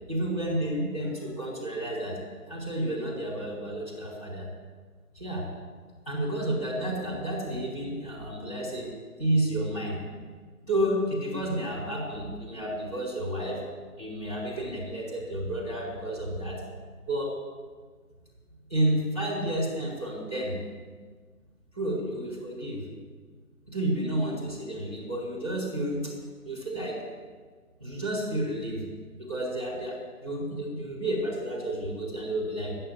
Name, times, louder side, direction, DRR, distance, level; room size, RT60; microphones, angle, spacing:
voice 1, 0.1-2.2 2.5-4.5 5.1-5.5 6.0-8.9 9.2-10.0 10.7-13.6 14.0-16.6 17.1-17.4 18.7-20.6 21.7-22.8 23.7-26.1 26.4-27.0 27.8-28.8 29.2-32.8, right 1 dB, 25° left, -8 dB, 5.1 m, -31 dB
11.0 x 10.5 x 8.3 m, 1.5 s
figure-of-eight pair, 180°, 44 cm